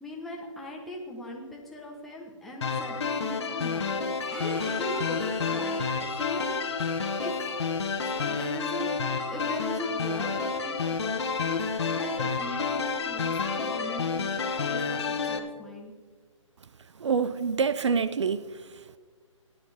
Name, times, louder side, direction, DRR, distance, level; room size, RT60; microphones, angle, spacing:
voice 1, 0.0-6.8 7.2-7.3 8.0-8.9 9.3-15.9, left 1 dB, ahead, 0.9 m, -39 dB
sound 1, 2.6-15.4, left 5 dB, 55° left, 1.1 m, -30 dB
Bowed string instrument, 4.3-10.5, left 1 dB, 20° right, 3.1 m, -47 dB
voice 2, 17.0-18.4, right 5 dB, 60° right, 0.5 m, -26 dB
16.5 x 10.5 x 3.4 m
hypercardioid pair, 165°, 17 cm